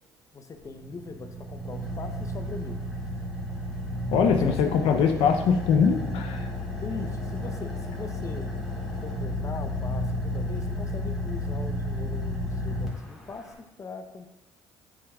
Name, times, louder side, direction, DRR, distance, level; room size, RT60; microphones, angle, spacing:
voice 1, 0.3-2.8 4.3-4.7 6.8-8.5 9.0-14.3, left 4 dB, 35° left, 7 dB, 0.7 m, -40 dB
Car / Idling, 0.6-13.5, left 1 dB, ahead, 2.3 m, -32 dB
voice 2, 4.1-6.5, left 6 dB, 70° left, 5 dB, 0.6 m, -22 dB
8.5 x 6.9 x 2.3 m, 0.96 s
supercardioid pair, 75°, 10 cm